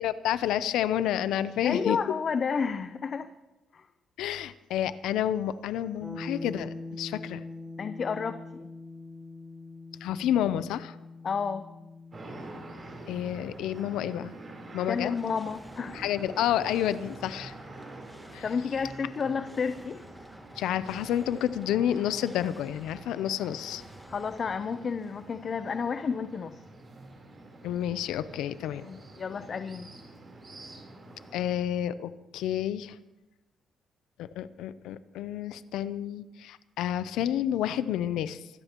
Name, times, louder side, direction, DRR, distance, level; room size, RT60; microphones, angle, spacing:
voice 1, 0.0-2.0 4.2-7.4 10.0-11.0 13.1-14.4 14.7-15.1 15.9-17.5 18.3-18.4 20.6-23.8 27.6-28.9 31.3-33.0 34.2-38.5, left 11 dB, 90° left, 14 dB, 0.5 m, -30 dB
voice 2, 1.6-3.3 3.7-3.8 7.8-8.7 11.2-11.6 14.9-16.0 18.4-20.1 24.1-26.6 28.8-29.9, left 5 dB, 45° left, 10 dB, 0.6 m, -31 dB
sound 1, 6.0-15.8, left 2 dB, 10° right, 4.5 m, -44 dB
sound 2, 12.1-31.5, right 2 dB, 40° right, 3.7 m, -47 dB
sound 3, 14.6-25.5, equal, 5° left, 1.6 m, -52 dB
24.5 x 13.5 x 3.0 m, 1.0 s
cardioid pair, 90°, 0 cm